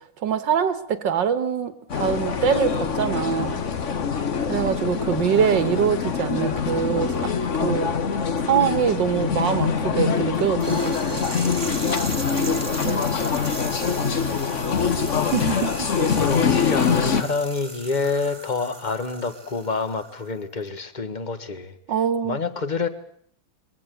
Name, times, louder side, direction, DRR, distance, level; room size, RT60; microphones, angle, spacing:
voice 1, 0.2-3.6 4.5-7.3 7.6-7.9 8.4-11.2 12.8-13.0 15.3-16.1 21.9-22.4, right 8 dB, 75° right, 12 dB, 2.1 m, -24 dB
sound 1, 1.9-17.2, left 6 dB, 45° left, 1.4 m, -24 dB
Angle Grinder, 10.6-20.4, right 2 dB, 15° right, 2.2 m, -37 dB
voice 2, 16.1-21.7 22.2-22.9, left 4 dB, 25° left, 11 dB, 1.5 m, -28 dB
22.5 x 15.5 x 9.3 m, 0.67 s
omnidirectional pair, 2.0 m